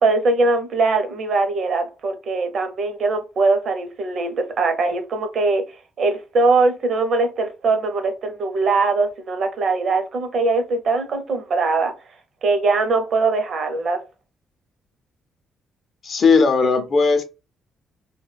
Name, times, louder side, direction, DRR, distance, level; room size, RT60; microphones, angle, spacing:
voice 1, 0.0-5.6 6.0-11.9 12.4-14.0, right 3 dB, 50° right, 0.6 m, -21 dB
voice 2, 16.0-17.2, left 4 dB, 40° left, 0.5 m, -17 dB
2.2 x 2.1 x 3.3 m
cardioid pair, 140°, 0 cm